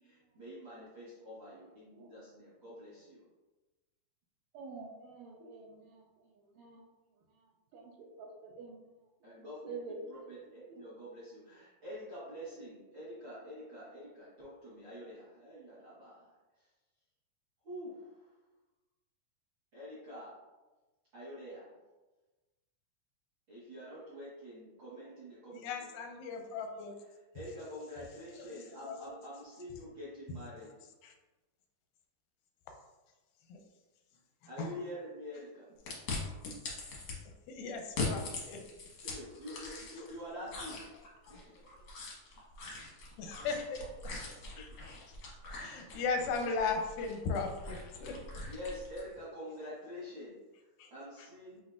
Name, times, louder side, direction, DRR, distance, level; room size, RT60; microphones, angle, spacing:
voice 1, 0.0-3.2 9.2-16.3 16.6-16.7 17.6-18.3 19.7-20.4 21.1-21.8 23.5-25.7 27.3-30.7 34.5-35.7 39.0-40.9 41.3-41.6 44.5-44.8 48.5-51.6, equal, 60° right, -10 dB, 1.3 m, -46 dB
voice 2, 4.5-6.9 7.2-8.9 9.6-10.8, right 4 dB, 80° right, -2 dB, 2.2 m, -48 dB
voice 3, 25.5-27.0 28.4-29.1 31.0-31.1 33.5-33.6 34.6-34.7 37.5-38.7 41.3-41.4 41.7-41.8 43.3-43.8 44.6-44.7 45.5-48.2 50.8-50.9, left 4 dB, 85° left, 4 dB, 2.3 m, -37 dB
sound 1, 35.9-37.2 37.8-40.1 40.5-49.1, left 3 dB, 70° left, 1.3 m, -42 dB
7.7 x 2.7 x 2.3 m, 1.2 s
omnidirectional pair, 4.0 m